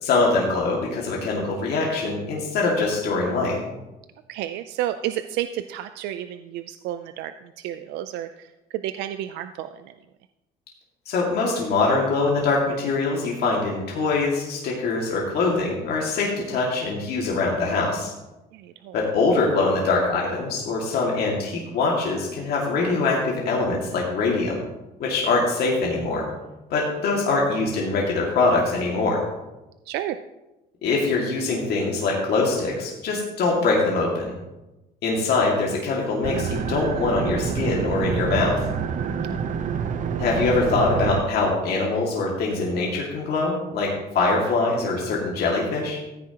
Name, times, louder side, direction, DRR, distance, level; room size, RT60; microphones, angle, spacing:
voice 1, 0.0-3.6 11.1-18.1 18.9-24.6 25.0-26.2 26.7-29.2 30.8-34.3 35.0-38.6 40.2-46.0, left 3 dB, 70° left, -3 dB, 2.3 m, -23 dB
voice 2, 4.3-9.9 18.5-19.0 25.0-25.1 29.9-30.2 39.2-39.5, right 12 dB, 90° right, 10 dB, 0.5 m, -31 dB
sound 1, 36.2-41.2, right 7 dB, 50° right, 0.8 m, -27 dB
14.5 x 9.3 x 3.0 m, 1.0 s
cardioid pair, 110°, 17 cm